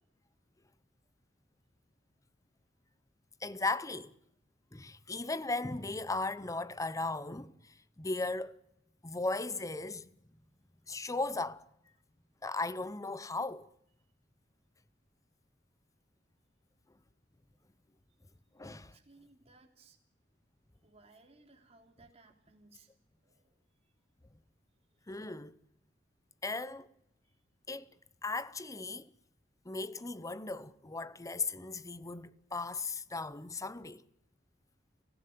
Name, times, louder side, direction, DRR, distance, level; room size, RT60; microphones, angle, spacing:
voice 1, 3.4-4.1 4.7-8.6 9.0-10.1 10.9-11.6 12.4-13.7 18.6-18.9 25.1-25.6 26.4-26.9 27.7-27.9 28.2-29.1 29.6-34.0, left 3 dB, 15° left, 0.7 m, -37 dB
voice 2, 18.6-20.0 20.8-22.9 23.2-23.6, right 3 dB, 35° right, 3.4 m, -62 dB
24.0 x 15.0 x 9.4 m
head